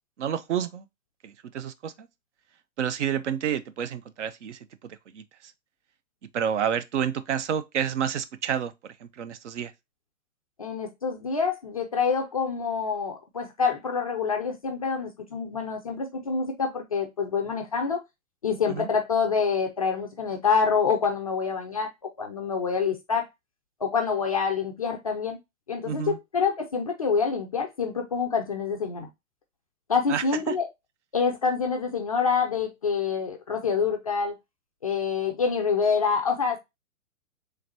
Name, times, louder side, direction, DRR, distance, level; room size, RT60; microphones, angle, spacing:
voice 1, 0.2-0.8 1.2-2.1 2.8-5.2 6.3-9.7 18.7-18.9 25.8-26.2 30.1-30.6, right 8 dB, 55° right, 0.6 m, -29 dB
voice 2, 10.6-18.0 18.4-23.3 23.8-25.4 25.7-29.1 29.9-30.7 31.1-34.3 34.8-36.6, left 5 dB, 30° left, 0.3 m, -26 dB
3.9 x 3.3 x 2.8 m
figure-of-eight pair, 120°, 44 cm